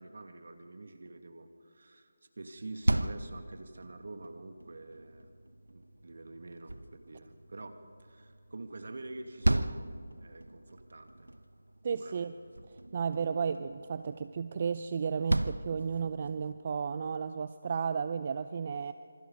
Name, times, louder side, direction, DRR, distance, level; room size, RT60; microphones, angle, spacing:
voice 1, 0.0-2.1 2.4-5.3 5.7-7.7 8.0-9.9 10.2-11.3 11.9-12.3, right 2 dB, 65° right, 7 dB, 2.1 m, -46 dB
sound 1, 2.6-16.5, right 1 dB, 90° right, 0.9 m, -37 dB
voice 2, 11.8-12.3 12.9-18.9, right 6 dB, 40° right, 12 dB, 0.5 m, -33 dB
27.0 x 25.5 x 4.1 m, 2.3 s
figure-of-eight pair, 160°, 0 cm